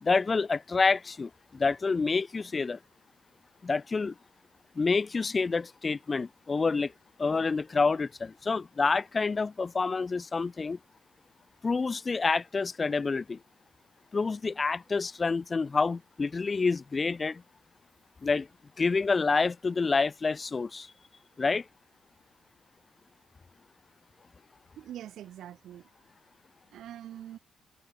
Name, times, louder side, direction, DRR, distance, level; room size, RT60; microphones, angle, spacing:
voice 1, 0.0-2.8 3.6-4.1 4.8-6.9 7.2-10.8 11.6-13.4 14.1-17.4 18.2-18.5 18.8-20.9 21.4-21.6, left 4 dB, 30° left, 0.4 m, -28 dB
voice 2, 24.8-25.9 26.7-27.4, right 11 dB, 75° right, 2.8 m, -44 dB
cardioid pair, 90°, 0 cm